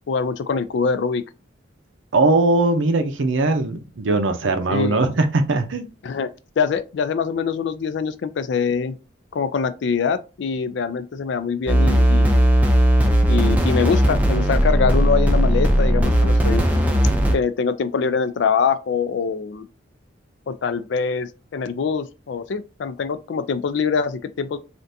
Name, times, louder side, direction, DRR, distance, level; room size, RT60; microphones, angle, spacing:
voice 1, 0.1-1.2 4.7-5.0 6.0-6.3 6.6-9.0 9.3-12.4 13.3-16.6 17.3-19.7 20.5-24.6, left 5 dB, 65° left, 0.3 m, -24 dB
voice 2, 2.1-5.8, right 2 dB, 75° right, 0.6 m, -20 dB
sound 1, 11.7-17.4, equal, 10° right, 0.5 m, -17 dB
3.4 x 2.5 x 2.7 m
head